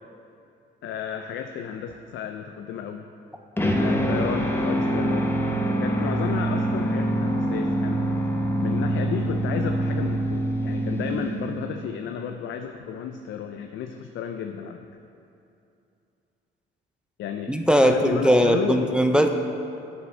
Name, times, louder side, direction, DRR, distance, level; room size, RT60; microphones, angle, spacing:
voice 1, 0.8-3.1 3.8-5.3 5.7-8.0 8.6-14.8 17.2-17.5 17.8-18.9, left 8 dB, 75° left, 6 dB, 0.5 m, -32 dB
sound 1, 3.6-11.8, right 1 dB, 10° left, 0.9 m, -25 dB
voice 2, 17.5-19.3, equal, 5° right, 4 dB, 0.5 m, -19 dB
8.1 x 5.1 x 6.6 m, 2.7 s
cardioid pair, 90°, 20 cm